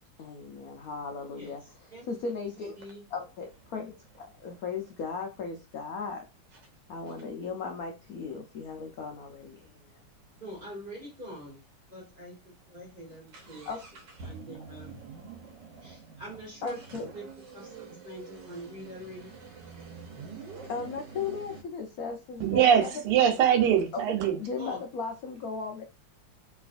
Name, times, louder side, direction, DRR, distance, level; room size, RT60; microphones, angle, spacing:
voice 1, 0.2-2.8 3.1-6.2 6.9-10.0 13.7-13.8 16.6-17.1 20.7-23.0 23.9-24.0 24.4-25.8, left 4 dB, 85° left, 0.7 m, -37 dB
voice 2, 1.4-2.1 2.8-3.0 10.4-11.6 11.9-13.7 14.2-14.9 15.3-15.4 15.8-16.8 17.1-19.4 24.6-24.8, equal, 30° right, 1.1 m, -44 dB
sound 1, 2.3-2.4 2.8-5.5 6.1-6.2 6.5-6.7 7.1-10.7 11.0-11.1 11.3-11.4 12.0-12.2 12.5-21.6, right 5 dB, 65° right, 1.4 m, -48 dB
voice 3, 22.4-24.4, right 9 dB, 90° right, 1.8 m, -22 dB
3.2 x 3.1 x 2.5 m
omnidirectional pair, 2.3 m